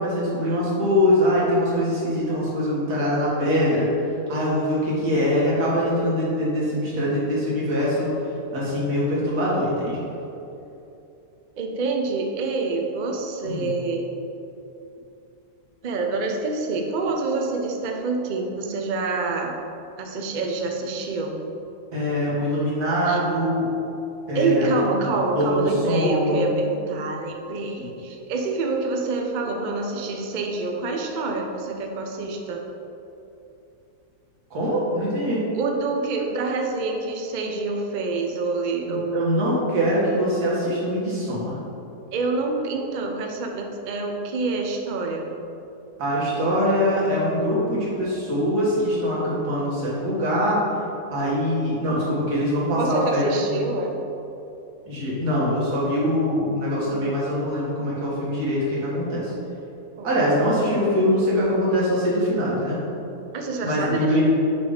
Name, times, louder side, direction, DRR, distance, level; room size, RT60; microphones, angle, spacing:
voice 1, 0.0-3.9 4.3-8.1 8.5-10.0 13.5-13.7 21.9-23.7 24.3-24.7 25.0-26.5 27.8-27.9 34.5-35.4 38.9-41.6 46.0-50.6 51.1-53.6 54.9-59.3 60.0-62.8 63.6-64.2, equal, 85° right, -7 dB, 2.1 m, -23 dB
voice 2, 11.6-14.1 15.8-19.6 20.0-21.4 23.1-23.2 24.3-32.7 35.5-39.5 42.1-45.3 52.8-54.0 56.8-57.0 60.0-60.1 63.3-64.2, right 3 dB, 60° right, 2 dB, 0.4 m, -26 dB
6.2 x 3.4 x 4.9 m, 2.8 s
omnidirectional pair, 1.6 m